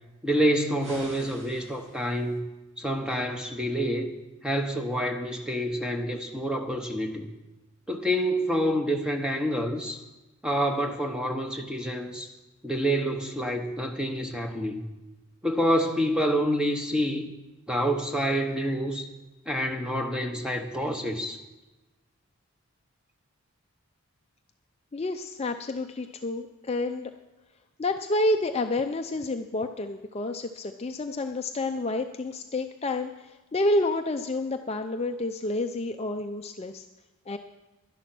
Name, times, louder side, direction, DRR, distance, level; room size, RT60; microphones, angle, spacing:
voice 1, 0.2-2.5 2.8-4.1 4.4-7.3 7.9-10.0 10.4-12.3 12.6-14.8 15.4-17.3 17.7-19.1 19.5-21.4, equal, 5° right, 4 dB, 1.0 m, -27 dB
sound 1, 0.8-2.4, right 1 dB, 55° right, 2.6 m, -47 dB
voice 2, 24.9-27.1 27.8-36.9 37.3-37.4, left 2 dB, 25° left, 6 dB, 0.4 m, -29 dB
12.0 x 11.0 x 6.0 m, 1.1 s
head